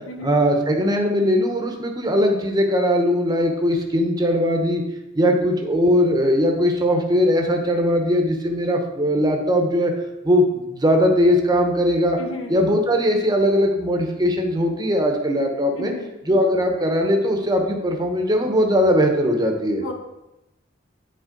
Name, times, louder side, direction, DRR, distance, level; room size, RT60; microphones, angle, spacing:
voice 1, 0.2-4.8 5.1-9.9 10.2-12.2 12.5-15.9 16.2-19.8, equal, 20° right, 2 dB, 0.9 m, -20 dB
voice 2, 12.2-12.6 15.8-16.1 19.8-19.9, left 2 dB, 80° left, 2 dB, 1.1 m, -33 dB
9.2 x 4.2 x 3.9 m, 0.94 s
head